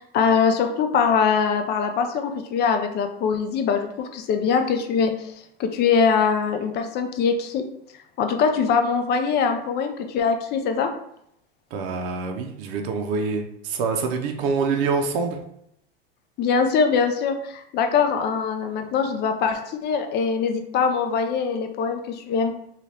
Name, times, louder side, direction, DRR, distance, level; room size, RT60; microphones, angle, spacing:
voice 1, 0.0-5.3 5.6-7.7 8.2-10.9 16.4-22.5, left 6 dB, 35° left, 6 dB, 0.4 m, -22 dB
voice 2, 11.7-15.4, right 4 dB, 60° right, 3 dB, 0.6 m, -25 dB
2.7 x 2.4 x 3.2 m, 0.74 s
hypercardioid pair, 105°, 31 cm